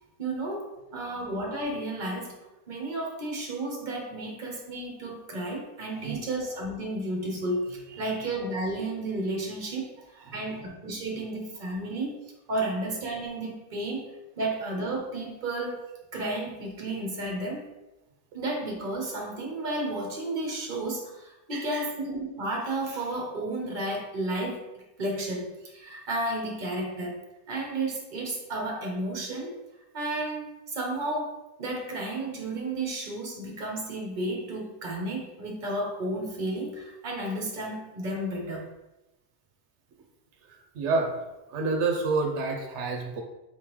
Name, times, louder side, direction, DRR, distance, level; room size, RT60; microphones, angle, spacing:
voice 1, 0.2-2.4 2.7-9.9 10.3-12.2 12.5-14.1 14.4-15.8 16.1-17.7 18.3-24.6 25.0-27.2 27.5-29.5 29.9-31.3 31.6-38.7, right 1 dB, 45° right, -1 dB, 1.1 m, -32 dB
voice 2, 10.2-10.6 21.5-21.9 40.5-41.1 41.5-43.2, right 3 dB, 90° right, 3 dB, 0.9 m, -29 dB
4.4 x 3.6 x 3.1 m, 1.0 s
omnidirectional pair, 1.2 m